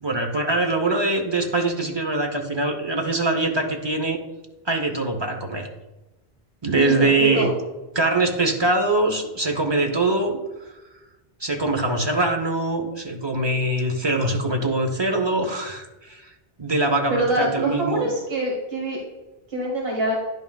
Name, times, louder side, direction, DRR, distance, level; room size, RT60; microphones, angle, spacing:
voice 1, 0.0-4.2 4.7-5.7 6.6-7.5 7.9-10.4 11.4-16.2 16.6-18.1, right 2 dB, 30° right, 3 dB, 0.8 m, -23 dB
voice 2, 6.8-7.5 17.1-19.0 19.5-20.2, right 1 dB, 75° right, -2 dB, 1.5 m, -25 dB
10.5 x 5.9 x 2.3 m, 1.1 s
omnidirectional pair, 1.0 m